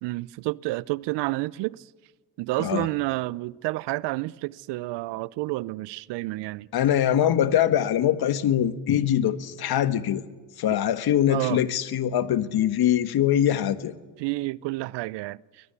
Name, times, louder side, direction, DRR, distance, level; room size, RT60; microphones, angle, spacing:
voice 1, 0.0-1.8 2.4-6.7 11.3-11.6 14.2-15.4, right 20 dB, 75° right, 0.7 m, -29 dB
voice 2, 6.7-10.2 10.6-13.9, left 10 dB, 60° left, 1.4 m, -23 dB
22.0 x 21.0 x 8.2 m
supercardioid pair, 65°, 42 cm